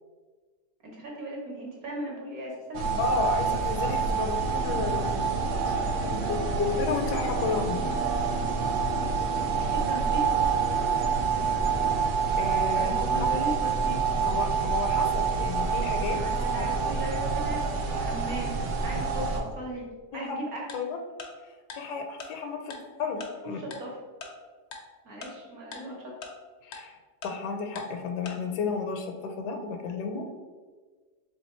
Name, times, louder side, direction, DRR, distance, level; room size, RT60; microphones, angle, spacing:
voice 1, 0.8-2.8 9.0-10.2 12.7-14.0 16.1-19.9 20.1-20.6 23.6-23.9 25.0-26.1, right 1 dB, 60° right, -2 dB, 1.5 m, -37 dB
sound 1, 2.7-19.4, right 5 dB, 80° right, 0.6 m, -27 dB
voice 2, 3.0-5.1 5.7-7.9 12.4-13.3 14.2-16.2 16.6-16.7 20.1-20.4 20.7-21.0 21.7-22.7 23.0-23.6 26.6-26.9 27.2-30.3, left 4 dB, 80° left, 4 dB, 1.1 m, -32 dB
sound 2, 4.3-12.1, equal, 45° right, 1.3 m, -38 dB
Tick-tock, 20.7-20.8 21.2-21.3 21.7-21.8 22.2-22.3 22.7-22.8 23.2-23.3 23.7-23.8 24.2-24.3 24.7-24.8 25.2-25.3 25.7-25.8 26.2-26.3 26.7-26.8 27.2-27.3 27.8-27.9 28.3-28.4, left 4 dB, 65° left, 0.7 m, -40 dB
3.5 x 3.2 x 4.2 m, 1.4 s
omnidirectional pair, 1.8 m